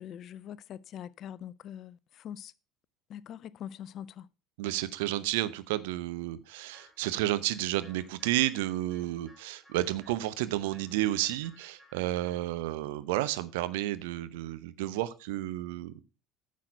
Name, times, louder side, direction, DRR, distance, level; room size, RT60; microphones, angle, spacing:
voice 1, 0.0-2.5 3.1-4.3, left 10 dB, 45° left, 0.5 m, -43 dB
voice 2, 4.6-15.9, right 15 dB, 65° right, 0.7 m, -31 dB
sound 1, 6.7-12.5, left 1 dB, ahead, 4.1 m, -60 dB
9.6 x 6.3 x 5.5 m
figure-of-eight pair, 65°, 0 cm